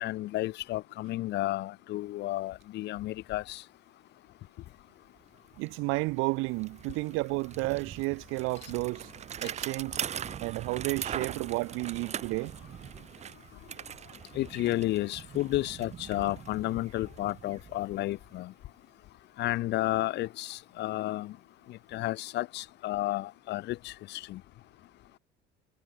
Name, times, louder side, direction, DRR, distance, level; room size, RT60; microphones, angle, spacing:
voice 1, 0.0-3.6 14.3-18.5 19.4-21.3 21.7-24.4, left 16 dB, 55° left, 1.3 m, -32 dB
Bicycle, 5.2-5.3 5.5-18.4, right 9 dB, 30° right, 2.1 m, -42 dB
voice 2, 5.6-9.1 9.4-10.0 10.4-12.5, right 25 dB, 90° right, 0.6 m, -32 dB
cardioid pair, 165°, 21 cm